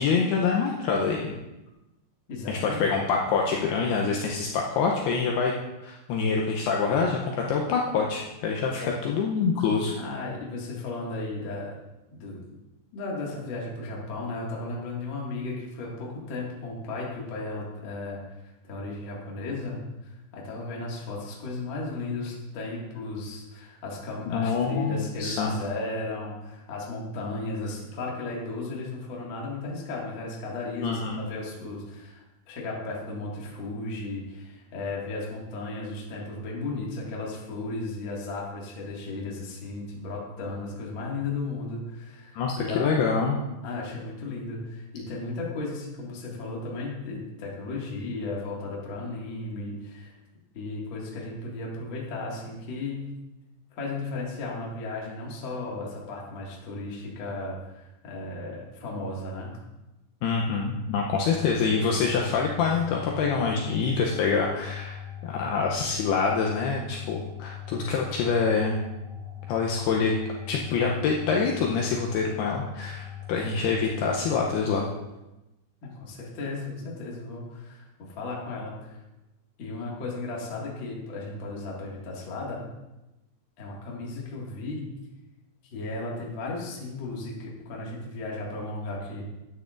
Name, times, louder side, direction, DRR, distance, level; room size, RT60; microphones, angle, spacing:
voice 1, 0.0-1.3 2.5-5.5 5.8-9.9 24.3-25.5 30.8-31.2 42.3-43.4 60.2-68.8 69.5-70.1 70.5-74.9, left 5 dB, 80° left, -1 dB, 2.4 m, -26 dB
voice 2, 2.3-2.8 8.8-8.9 10.0-11.7 12.1-12.4 12.9-18.2 18.7-42.9 43.6-50.1 50.5-53.1 53.7-59.5 75.8-79.0 79.6-82.6 83.6-84.9 85.6-89.3, left 3 dB, 45° left, -4 dB, 1.6 m, -35 dB
sound 1, 61.0-74.8, left 10 dB, 70° right, 3.9 m, -40 dB
13.0 x 9.2 x 2.5 m, 1.0 s
omnidirectional pair, 5.2 m